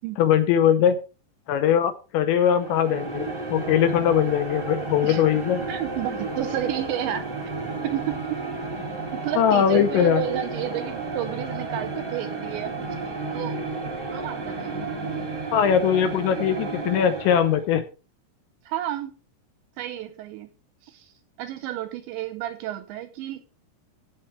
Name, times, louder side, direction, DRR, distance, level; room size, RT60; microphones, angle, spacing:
voice 1, 0.2-1.0 1.5-5.6 9.4-10.2 15.5-17.8, left 9 dB, 80° left, 10 dB, 2.8 m, -21 dB
sound 1, 2.4-17.7, right 3 dB, 30° right, 1.0 m, -32 dB
voice 2, 5.7-7.3 7.8-8.4 9.1-13.6 14.1-14.9 18.7-19.2 19.8-20.5 20.8-21.1 21.4-23.5, right 12 dB, 80° right, 10 dB, 2.7 m, -31 dB
15.5 x 7.4 x 3.2 m, 0.33 s
omnidirectional pair, 5.8 m